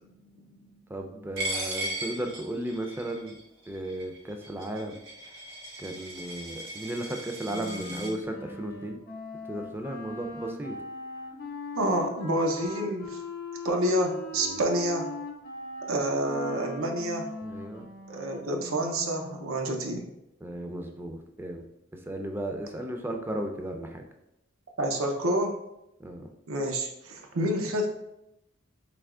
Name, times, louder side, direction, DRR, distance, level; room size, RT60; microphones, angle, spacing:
voice 1, 0.0-0.7 11.7-13.2 13.6-15.1 15.9-17.3 18.1-20.1 24.8-25.6 26.5-27.9, right 1 dB, 85° right, 2 dB, 0.6 m, -28 dB
voice 2, 0.9-3.3 3.7-5.0 5.8-9.0 9.5-10.8 14.3-14.6 17.4-17.9 20.4-21.7 21.9-24.0 26.0-26.3, right 1 dB, 10° right, 4 dB, 0.4 m, -35 dB
Coin (dropping), 1.4-8.1, right 1 dB, 70° right, 1.4 m, -37 dB
Wind instrument woodwind instrument, 7.5-19.5, left 2 dB, 50° left, 0.7 m, -40 dB
3.4 x 2.9 x 3.6 m, 0.85 s
head